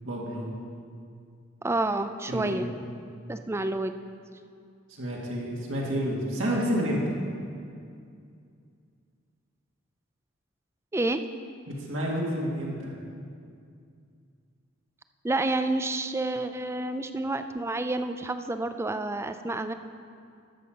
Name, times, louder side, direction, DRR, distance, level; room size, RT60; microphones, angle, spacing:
voice 1, 0.0-0.5 2.3-2.6 5.0-7.1 11.7-12.9, equal, 75° right, -4 dB, 2.3 m, -29 dB
voice 2, 1.6-2.7 3.3-4.0 10.9-11.2 15.2-19.7, right 2 dB, 15° right, 9 dB, 0.4 m, -29 dB
12.5 x 7.5 x 5.2 m, 2.3 s
head